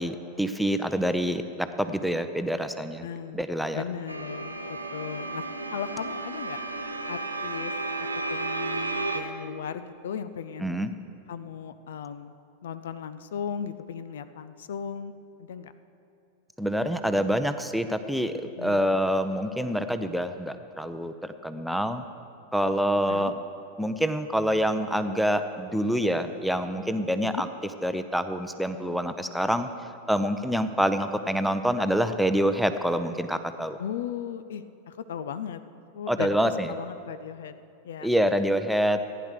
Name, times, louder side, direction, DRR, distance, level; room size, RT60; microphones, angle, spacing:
voice 1, 0.0-3.1 3.3-3.8 10.6-10.9 16.6-21.1 21.4-22.0 22.5-23.3 23.8-27.5 27.8-29.7 30.1-33.8 36.1-36.7 38.0-39.0, equal, ahead, 8 dB, 0.7 m, -26 dB
voice 2, 3.0-3.4 3.7-5.5 5.7-6.6 7.1-7.7 8.0-10.8 11.3-12.3 12.6-15.1 15.4-15.7 18.5-18.9 23.1-23.3 27.2-27.4 33.8-35.6 35.9-36.4 36.7-37.5 37.8-38.1, left 8 dB, 60° left, 12 dB, 0.5 m, -36 dB
sound 1, 4.1-9.2, right 2 dB, 85° right, 0.9 m, -33 dB
15.0 x 10.0 x 6.6 m, 2.7 s
figure-of-eight pair, 90°, 0 cm